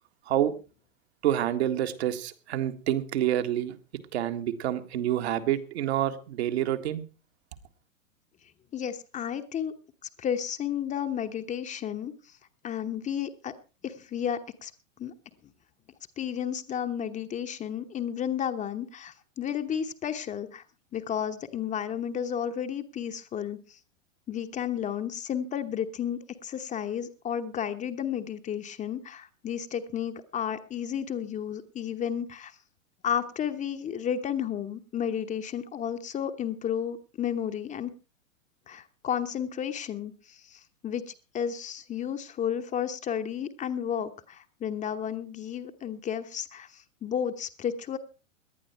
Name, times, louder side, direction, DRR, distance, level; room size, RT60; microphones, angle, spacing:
voice 1, 1.2-3.8 4.1-7.0, right 11 dB, 55° right, 8 dB, 1.9 m, -27 dB
voice 2, 8.7-9.7 10.2-12.1 12.6-13.5 13.8-14.7 15.0-15.1 16.2-20.6 20.9-23.8 24.3-32.5 33.0-37.9 38.7-48.0, left 8 dB, 20° left, 7 dB, 1.0 m, -32 dB
18.0 x 11.5 x 4.5 m, 0.33 s
figure-of-eight pair, 105°, 39 cm